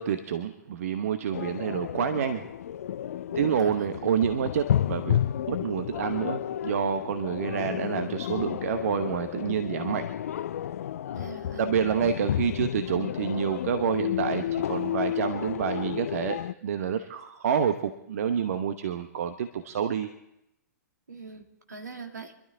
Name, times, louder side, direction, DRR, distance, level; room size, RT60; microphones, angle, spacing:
voice 1, 0.0-2.5 3.3-5.2 5.5-10.1 11.6-20.1, right 8 dB, 55° right, 9 dB, 0.9 m, -28 dB
sound 1, 1.3-16.5, left 10 dB, 55° left, 0.4 m, -31 dB
voice 2, 3.3-4.2 11.1-11.6 21.1-22.3, right 5 dB, 70° right, 5 dB, 1.8 m, -43 dB
25.5 x 12.0 x 3.7 m, 0.83 s
figure-of-eight pair, 110°, 9 cm